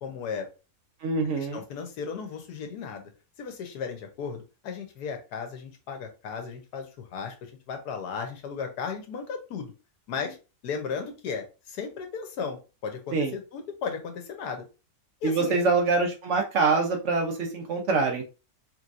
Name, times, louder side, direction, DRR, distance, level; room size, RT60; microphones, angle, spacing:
voice 1, 0.0-0.5 1.4-3.1 3.4-9.7 10.1-10.4 10.6-14.6 15.2-15.6, left 6 dB, 85° left, 5 dB, 1.4 m, -35 dB
voice 2, 1.0-1.6 13.1-13.3 15.2-18.2, right 4 dB, 60° right, 2 dB, 0.8 m, -25 dB
3.4 x 3.1 x 2.5 m, 0.31 s
omnidirectional pair, 1.6 m